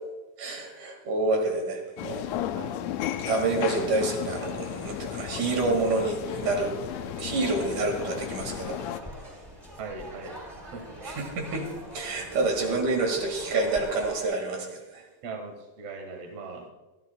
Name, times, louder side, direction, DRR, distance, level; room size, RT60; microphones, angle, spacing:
voice 1, 0.4-2.3 3.3-6.7 7.2-8.8 11.0-15.0, right 3 dB, 70° right, 2 dB, 3.4 m, -28 dB
sound 1, 2.0-9.0, left 11 dB, 85° left, 1.5 m, -34 dB
sound 2, 4.8-14.2, equal, 10° right, 3.7 m, -45 dB
voice 2, 9.8-11.0 12.6-12.8 15.2-16.7, right 4 dB, 55° right, 2 dB, 2.5 m, -40 dB
26.5 x 10.5 x 2.3 m, 1.1 s
omnidirectional pair, 3.6 m